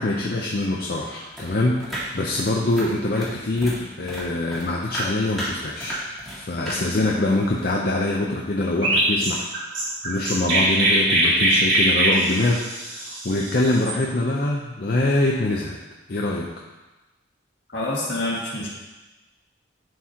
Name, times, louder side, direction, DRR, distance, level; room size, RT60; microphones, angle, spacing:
voice 1, 0.0-6.0 6.3-15.8 16.1-16.5, left 2 dB, 50° left, -2 dB, 0.6 m, -24 dB
sound 1, 1.3-3.8 4.1-6.4 6.7-7.7, right 1 dB, ahead, 1.7 m, -33 dB
Chirp tweet, 8.8-14.0, right 1 dB, 85° right, 2.4 m, -21 dB
voice 2, 17.7-18.7, left 2 dB, 70° left, -4 dB, 1.9 m, -27 dB
11.0 x 4.7 x 2.9 m, 1.1 s
head